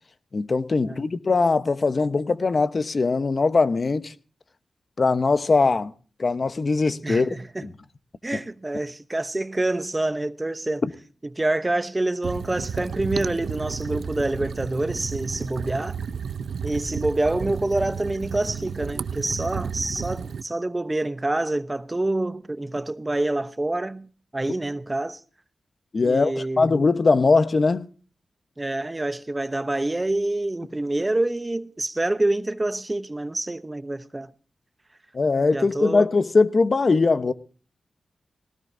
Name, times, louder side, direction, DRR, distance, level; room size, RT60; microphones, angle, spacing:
voice 1, 0.3-4.1 5.0-5.9 6.2-7.7 8.3-8.4 25.9-27.8 35.1-37.3, left 4 dB, 50° left, 1.0 m, -21 dB
voice 2, 7.0-7.7 8.2-10.8 11.3-16.0 16.6-25.2 26.0-26.7 28.6-34.3 35.5-36.0, right 2 dB, 25° right, 0.9 m, -27 dB
sound 1, 12.2-20.4, right 6 dB, 80° right, 0.7 m, -32 dB
19.0 x 18.0 x 2.7 m
cardioid pair, 65°, 0 cm